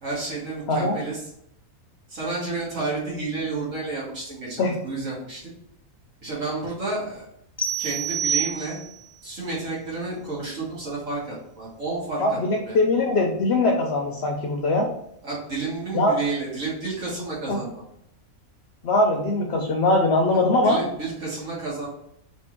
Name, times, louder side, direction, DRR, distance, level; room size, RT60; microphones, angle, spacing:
voice 1, 0.0-1.2 2.1-5.4 6.2-7.3 7.8-8.8 9.2-12.4 12.6-12.8 15.2-17.7 20.3-21.9, right 3 dB, 65° right, -6 dB, 1.8 m, -31 dB
sound 1, 7.6-9.1, right 6 dB, 30° left, 0.5 m, -27 dB
voice 2, 12.2-14.9 15.9-16.2 17.5-17.6 18.8-20.8, left 2 dB, 60° left, 1 dB, 0.8 m, -21 dB
3.5 x 2.9 x 4.4 m, 0.74 s
omnidirectional pair, 1.5 m